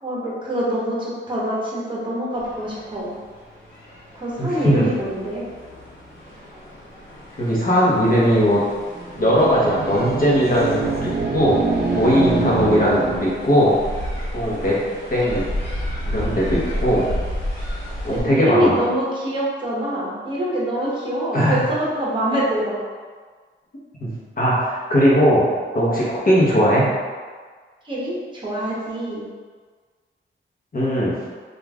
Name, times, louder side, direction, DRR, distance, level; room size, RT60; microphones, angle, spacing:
voice 1, 0.0-3.2 4.1-5.4 14.4-14.6 18.1-22.8 27.8-29.2, equal, 25° right, -6 dB, 0.9 m, -25 dB
sound 1, 2.3-18.2, equal, 60° left, 1.2 m, -33 dB
voice 2, 4.4-4.9 7.4-8.6 9.2-11.6 11.9-13.7 14.3-14.8 15.1-15.5 16.1-17.0 18.0-18.8 21.3-21.6 24.0-25.5 25.7-26.9 30.7-31.1, equal, 45° left, -6 dB, 0.9 m, -18 dB
sound 2, 9.0-13.6, right 3 dB, 50° right, 0.4 m, -25 dB
3.0 x 2.4 x 2.3 m, 1.5 s
cardioid pair, 75°, 21 cm